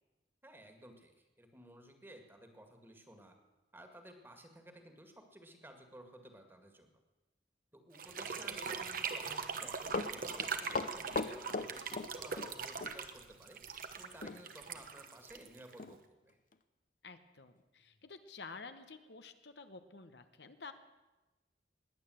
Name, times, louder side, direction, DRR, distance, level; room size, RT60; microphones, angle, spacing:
voice 1, 0.4-3.4 3.7-6.9 7.7-13.6 14.0-16.4, right 1 dB, 15° right, 5 dB, 1.9 m, -55 dB
sound 1, 7.9-16.0, right 6 dB, 55° right, 1.2 m, -41 dB
voice 2, 8.5-8.8 17.0-20.7, left 4 dB, 70° left, 9 dB, 1.1 m, -51 dB
Run, 9.6-12.5 12.8-12.9 14.2-14.4 14.8-14.9 15.4-15.5 15.8-16.0 16.5-16.6, left 3 dB, 50° left, 0.8 m, -38 dB
20.0 x 9.0 x 7.8 m, 1.1 s
head